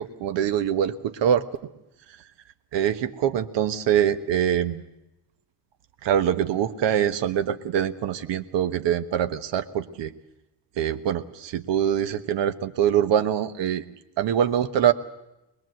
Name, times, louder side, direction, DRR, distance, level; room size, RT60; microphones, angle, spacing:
voice 1, 0.0-1.5 2.7-4.8 6.0-10.1 10.8-13.8 14.2-14.9, right 9 dB, 85° right, 9 dB, 1.3 m, -24 dB
23.5 x 20.5 x 7.9 m, 0.90 s
cardioid pair, 140°, 42 cm